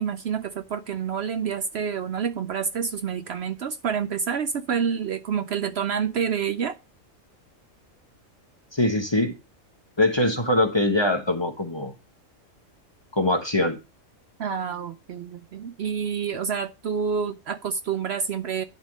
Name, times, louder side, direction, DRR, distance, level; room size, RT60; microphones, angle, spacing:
voice 1, 0.0-6.8 14.4-18.6, right 7 dB, 60° right, 0.8 m, -28 dB
voice 2, 8.7-9.3 10.0-11.9 13.1-13.8, left 1 dB, 20° left, 1.0 m, -22 dB
11.0 x 3.7 x 7.3 m
omnidirectional pair, 1.4 m